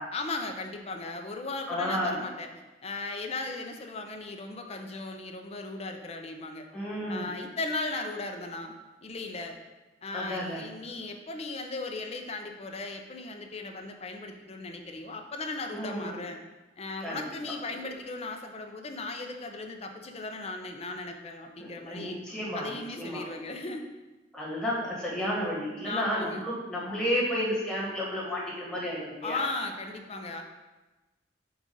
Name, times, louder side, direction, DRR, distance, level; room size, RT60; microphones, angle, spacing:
voice 1, 0.1-2.5 2.8-6.7 7.1-8.7 9.0-9.6 10.0-16.4 16.8-22.2 22.5-23.9 25.8-26.5 29.2-30.4, left 3 dB, 35° left, 4 dB, 0.6 m, -37 dB
voice 2, 1.7-2.2 6.7-7.3 10.1-10.6 15.7-16.2 17.0-17.3 21.6-23.2 24.3-29.4, equal, 5° left, -5 dB, 1.4 m, -32 dB
7.1 x 2.5 x 5.3 m, 1.1 s
head